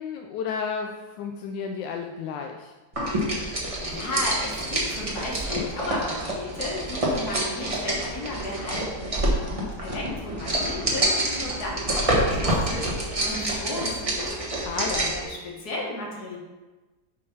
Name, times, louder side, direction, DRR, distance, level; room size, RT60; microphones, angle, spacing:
voice 1, 0.0-2.7 9.4-9.7 14.6-15.1, left 6 dB, 85° left, 3 dB, 1.2 m, -32 dB
sound 1, 2.9-15.2, right 1 dB, 20° right, 1.1 m, -27 dB
voice 2, 3.4-14.3 15.1-16.4, left 2 dB, 60° left, -3 dB, 2.1 m, -34 dB
7.5 x 3.9 x 5.5 m, 1.2 s
omnidirectional pair, 1.9 m